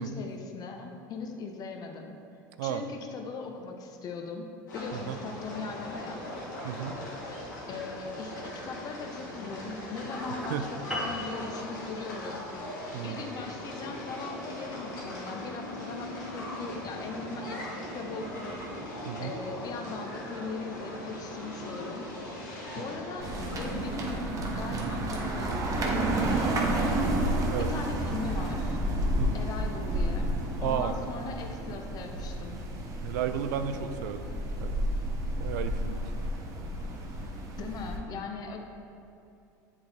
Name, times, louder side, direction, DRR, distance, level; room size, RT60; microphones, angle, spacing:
voice 1, 0.0-2.1 2.6-4.5 4.7-6.2 7.7-12.5 13.0-22.1 22.8-24.3 24.5-27.2 27.7-28.8 29.3-30.3 30.6-32.7 37.6-38.6, left 4 dB, 40° left, 3 dB, 0.7 m, -39 dB
sound 1, 4.7-24.2, left 1 dB, 90° left, 1.5 m, -40 dB
voice 2, 6.6-7.0 10.3-10.7 12.9-13.3 19.1-19.3 22.8-22.9 24.7-24.9 27.5-27.7 29.2-29.4 30.6-30.9 33.0-34.2 34.6-34.7 35.4-36.1, right 9 dB, 75° right, 9 dB, 0.4 m, -33 dB
sound 2, 10.9-15.6, equal, 5° right, 1.1 m, -41 dB
sound 3, 23.2-38.0, right 1 dB, 35° right, 0.9 m, -31 dB
7.9 x 3.6 x 3.4 m, 2.7 s
hypercardioid pair, 100°, 10 cm